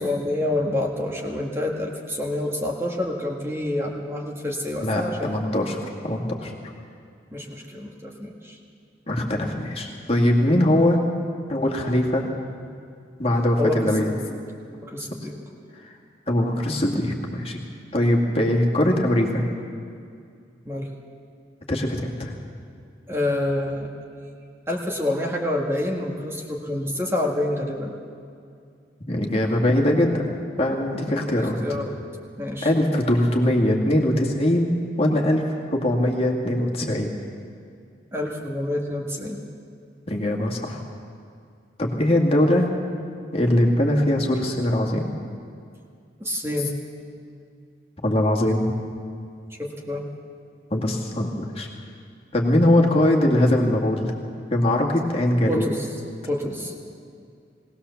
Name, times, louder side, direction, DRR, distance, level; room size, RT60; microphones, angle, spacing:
voice 1, 0.0-5.5 7.3-8.6 13.6-14.4 14.7-15.3 20.7-20.9 23.1-23.9 24.7-28.0 31.2-31.9 32.4-32.7 38.1-39.4 46.2-46.7 49.6-50.0 55.5-55.9 56.2-56.7, left 1 dB, 15° right, 0 dB, 1.7 m, -27 dB
voice 2, 4.8-6.5 9.1-11.0 11.5-12.3 13.2-14.1 15.8-15.9 16.3-17.6 17.9-19.4 21.7-22.3 29.1-30.3 30.6-31.8 32.6-35.5 35.7-37.1 40.1-40.8 41.8-42.7 43.3-45.1 48.0-48.8 50.7-51.7 52.3-54.1 54.5-55.7, left 1 dB, 35° left, 0 dB, 2.1 m, -21 dB
19.5 x 18.5 x 7.1 m, 2.3 s
head